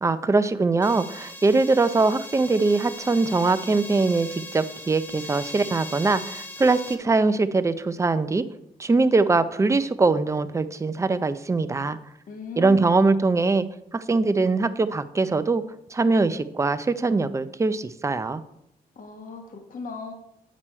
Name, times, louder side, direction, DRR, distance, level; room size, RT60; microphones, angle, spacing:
voice 1, 0.0-8.4 8.8-12.0 12.6-13.7 13.9-15.6 15.9-18.4, right 3 dB, 20° right, 11 dB, 0.5 m, -22 dB
sound 1, 0.8-7.0, left 1 dB, 15° left, 0.9 m, -39 dB
voice 2, 12.3-12.9 19.0-20.1, left 5 dB, 60° left, 4 dB, 1.5 m, -36 dB
8.6 x 6.2 x 4.4 m, 0.79 s
cardioid pair, 105°, 16 cm